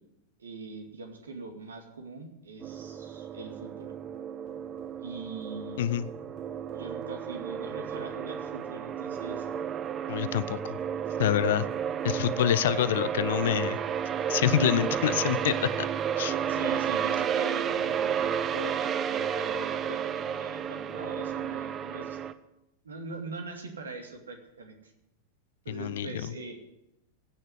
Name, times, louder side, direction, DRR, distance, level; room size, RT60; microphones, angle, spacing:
voice 1, 0.4-3.9 5.0-5.8 6.7-9.5 12.6-12.9 16.5-22.2 22.8-24.9 25.6-26.6, right 3 dB, 70° right, 4 dB, 2.3 m, -42 dB
sound 1, 2.6-22.3, right 8 dB, 25° right, 0.7 m, -32 dB
voice 2, 10.1-10.8 11.2-11.7 12.0-13.8 14.3-15.7 16.2-16.4 25.7-26.1, left 11 dB, 55° left, 16 dB, 0.6 m, -26 dB
15.5 x 6.6 x 9.5 m, 0.87 s
figure-of-eight pair, 90°, 0 cm